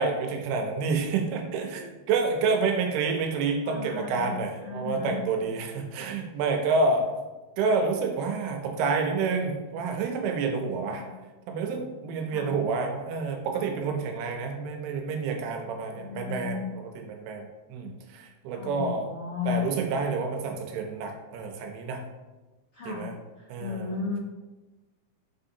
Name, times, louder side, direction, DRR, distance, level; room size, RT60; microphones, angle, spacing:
voice 1, 0.0-7.1 7.6-11.0 11.5-19.1 19.5-22.0 22.9-23.1 23.5-24.0, right 4 dB, 90° right, 3 dB, 2.6 m, -28 dB
voice 2, 3.6-4.4 4.6-5.2 10.9-11.1 12.3-12.5 15.9-16.6 18.5-19.6 22.7-23.1 23.3-24.2, left 6 dB, 85° left, -11 dB, 1.2 m, -35 dB
5.7 x 2.7 x 2.6 m, 1.2 s
omnidirectional pair, 4.4 m